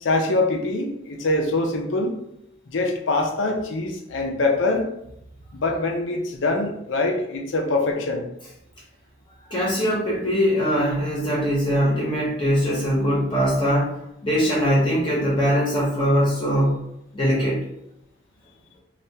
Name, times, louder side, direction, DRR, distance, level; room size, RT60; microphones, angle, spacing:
voice 1, 0.0-2.1 2.7-4.9 5.5-8.3, left 2 dB, 80° left, 2 dB, 0.6 m, -24 dB
voice 2, 9.5-13.9 14.2-16.8 17.1-17.6, equal, 25° left, -5 dB, 0.8 m, -21 dB
3.3 x 2.3 x 2.7 m, 0.79 s
head